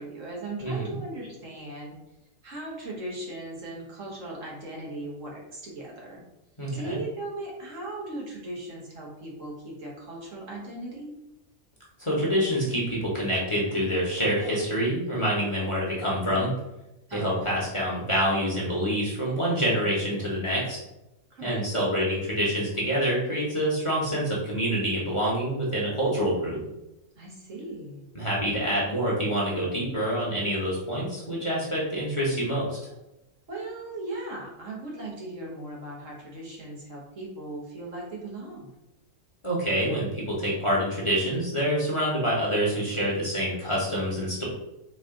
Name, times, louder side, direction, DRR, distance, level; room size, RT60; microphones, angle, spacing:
voice 1, 0.0-1.9 2.4-6.2 6.7-11.1 17.1-17.5 21.3-21.5 27.2-28.1 33.5-38.7, right 2 dB, 70° right, -4 dB, 1.6 m, -38 dB
voice 2, 0.6-1.0 6.6-7.0 12.0-16.5 17.1-20.8 21.4-26.7 28.1-32.8 39.4-44.4, equal, 25° left, -6 dB, 0.8 m, -26 dB
4.1 x 2.5 x 3.6 m, 0.93 s
omnidirectional pair, 1.4 m